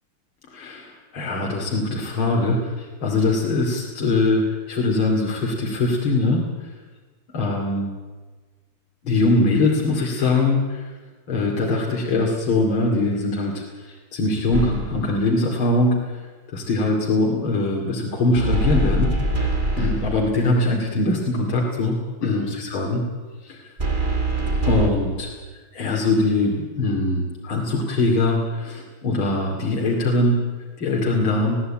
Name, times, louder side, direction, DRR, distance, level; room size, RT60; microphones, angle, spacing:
voice 1, 0.5-6.7 7.3-7.9 9.0-10.9 11.3-16.2 16.5-23.0 23.4-23.7 24.7-25.3 25.7-30.4 30.8-31.6, left 2 dB, 70° left, -1 dB, 3.3 m, -22 dB
sound 1, 14.5-15.1 18.4-20.4 23.8-24.9, right 2 dB, 25° right, 2.0 m, -23 dB
21.0 x 15.5 x 8.8 m, 1.3 s
omnidirectional pair, 2.3 m